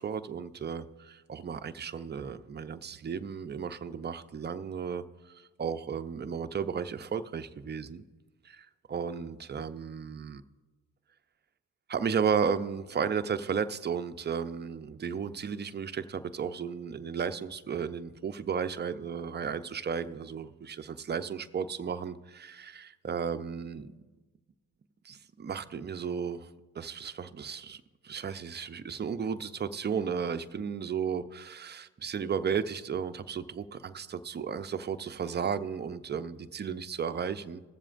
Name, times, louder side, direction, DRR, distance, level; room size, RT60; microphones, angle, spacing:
voice 1, 0.0-8.0 8.4-10.4 11.9-23.9 25.0-26.5 26.7-37.6, right 6 dB, 25° right, 10 dB, 0.5 m, -34 dB
21.5 x 7.4 x 2.5 m, 1.2 s
cardioid pair, 70°, 40 cm